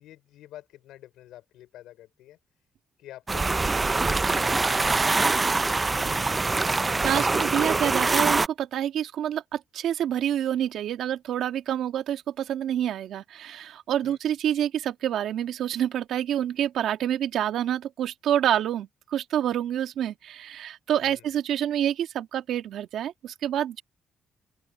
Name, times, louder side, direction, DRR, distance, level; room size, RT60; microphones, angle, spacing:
voice 1, 0.0-2.4 3.0-3.8 4.3-5.4 14.0-14.2 21.0-21.3, left 14 dB, 90° left, 5.7 m, -48 dB
sound 1, 3.3-8.5, right 3 dB, 25° right, 0.5 m, -24 dB
voice 2, 6.8-23.8, right 10 dB, 75° right, 1.9 m, -27 dB
open air
cardioid pair, 90°, 0 cm